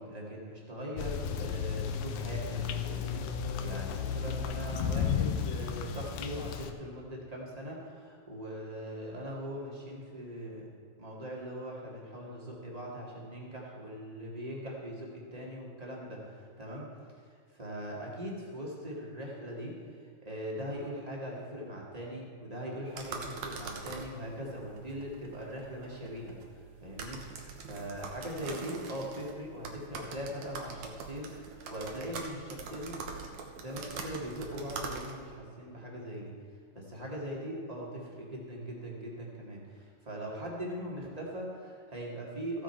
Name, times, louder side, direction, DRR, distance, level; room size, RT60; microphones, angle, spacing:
voice 1, 0.0-10.7 11.0-16.8 17.5-19.7 20.0-33.0 33.6-36.3 36.7-42.6, equal, 20° right, -3 dB, 1.1 m, -41 dB
sound 1, 1.0-6.7, left 7 dB, 75° left, 2.3 m, -33 dB
sound 2, 22.9-35.4, right 4 dB, 65° right, 2.0 m, -43 dB
14.5 x 9.8 x 4.5 m, 2.3 s
omnidirectional pair, 4.3 m